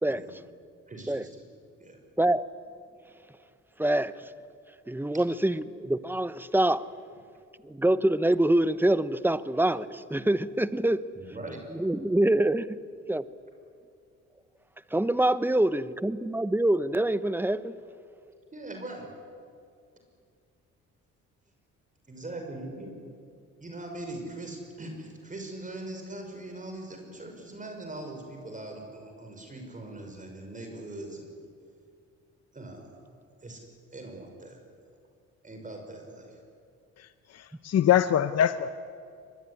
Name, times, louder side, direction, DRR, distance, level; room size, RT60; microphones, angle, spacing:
voice 1, 0.9-1.4 1.8-2.0 11.1-11.6 18.5-19.1 22.1-22.9 23.6-31.3 32.5-32.9 33.4-33.6 33.9-34.6 35.4-36.4, right 2 dB, 25° right, 3 dB, 5.7 m, -41 dB
voice 2, 3.8-4.1 4.9-6.9 7.7-11.1 11.7-12.8 13.1-13.2 14.9-17.8, right 1 dB, 5° right, 14 dB, 0.9 m, -25 dB
voice 3, 37.3-38.7, left 10 dB, 55° left, 12 dB, 0.9 m, -23 dB
24.0 x 21.5 x 9.9 m, 2.3 s
cardioid pair, 90°, 30 cm